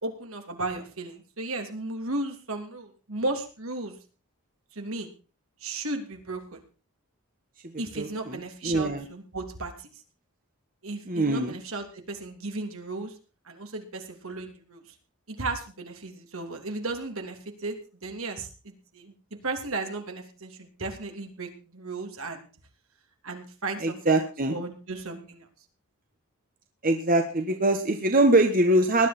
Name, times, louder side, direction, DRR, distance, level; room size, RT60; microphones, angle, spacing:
voice 1, 0.0-3.9 4.7-5.1 5.6-6.6 7.8-10.0 10.8-13.1 13.4-14.9 15.3-17.8 18.0-19.1 19.4-22.4 23.2-24.2 24.5-25.5, right 2 dB, 75° right, 4 dB, 3.0 m, -35 dB
voice 2, 7.7-9.1 11.1-11.5 23.8-24.6 26.8-29.1, right 2 dB, 40° right, 5 dB, 1.4 m, -23 dB
19.5 x 11.0 x 4.3 m, 0.35 s
head